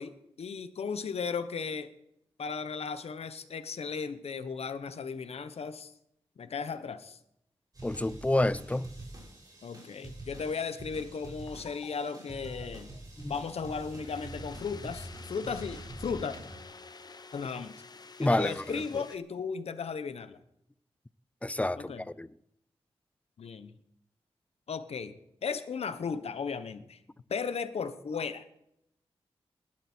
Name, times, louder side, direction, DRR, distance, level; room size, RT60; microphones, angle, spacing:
voice 1, 0.0-1.9 2.4-5.9 6.4-7.2 9.6-12.9 13.3-16.4 17.3-17.7 18.2-20.4 21.7-22.0 23.4-23.8 24.7-27.0 27.3-28.4, left 5 dB, 80° left, 1.2 m, -36 dB
sound 1, 7.7-16.6, right 1 dB, 35° right, 5.1 m, -46 dB
voice 2, 7.8-8.9 13.2-13.3 18.2-18.8 21.4-22.3, left 1 dB, 15° left, 0.5 m, -29 dB
sound 2, 11.5-19.2, left 4 dB, 40° left, 1.0 m, -50 dB
20.0 x 12.0 x 4.6 m
wide cardioid pair, 85°, 10 cm